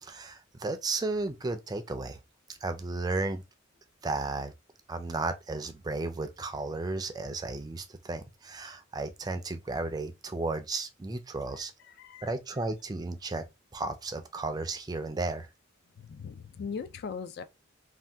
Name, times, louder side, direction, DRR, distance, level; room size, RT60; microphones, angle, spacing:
voice 1, 0.0-2.2 2.6-3.4 4.0-4.5 4.9-11.7 12.2-13.4 13.7-15.5, right 3 dB, 20° right, 0.4 m, -34 dB
voice 2, 11.6-12.3 16.0-17.4, left 6 dB, 55° left, 0.3 m, -40 dB
2.7 x 2.2 x 3.3 m
head